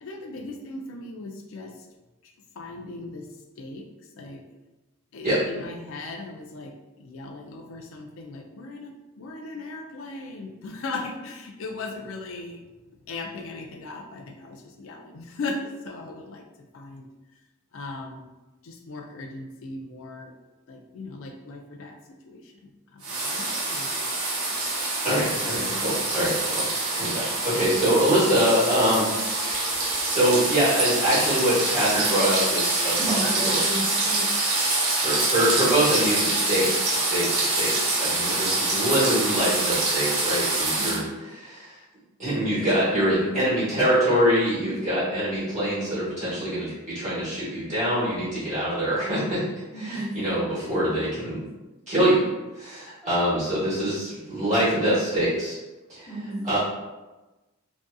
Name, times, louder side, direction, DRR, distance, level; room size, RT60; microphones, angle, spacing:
voice 1, 0.0-1.7 2.6-3.3 3.6-3.9 4.2-4.4 5.1-6.7 7.0-12.6 13.1-16.4 16.7-17.0 17.7-18.3 18.6-20.3 20.7-21.9 22.3-22.4 22.9-24.1 25.2-25.5, left 3 dB, 70° left, 3 dB, 0.4 m, -38 dB
sound 1, 23.0-41.0, right 2 dB, 90° right, 0.7 m, -25 dB
voice 2, 25.0-26.6 26.9-29.1 29.4-33.2 33.4-33.6 34.9-41.8 42.2-49.4 49.7-51.4 51.9-52.2 52.5-55.5 55.9-56.1 56.4-56.6, right 1 dB, 35° right, -12 dB, 1.1 m, -24 dB
voice 3, 33.0-34.4 40.7-40.9 49.7-50.2 56.1-56.5, right 1 dB, 15° left, -13 dB, 0.7 m, -32 dB
2.6 x 2.3 x 2.2 m, 1.1 s
head